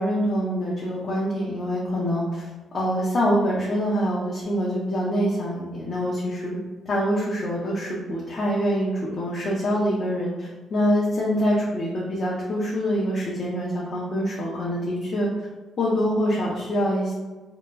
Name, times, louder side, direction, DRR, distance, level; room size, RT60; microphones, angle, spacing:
voice 1, 0.0-6.6 6.9-15.5 15.8-17.1, equal, 50° left, -5 dB, 0.5 m, -25 dB
2.8 x 2.1 x 2.2 m, 1.2 s
cardioid pair, 90°, 0 cm